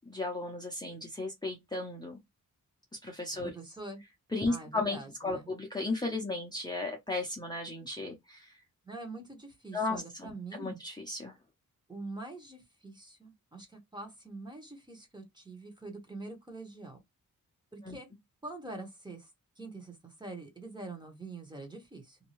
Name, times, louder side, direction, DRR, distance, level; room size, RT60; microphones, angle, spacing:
voice 1, 0.1-2.2 3.0-3.5 4.3-8.6 9.7-11.3 17.8-18.0, left 2 dB, 10° left, 0.7 m, -35 dB
voice 2, 3.4-4.0 4.5-5.5 8.8-10.8 11.9-17.0 17.7-18.1 18.4-19.3 19.6-22.2, right 2 dB, 15° right, 1.0 m, -45 dB
2.7 x 2.3 x 3.0 m
wide cardioid pair, 105°, 34 cm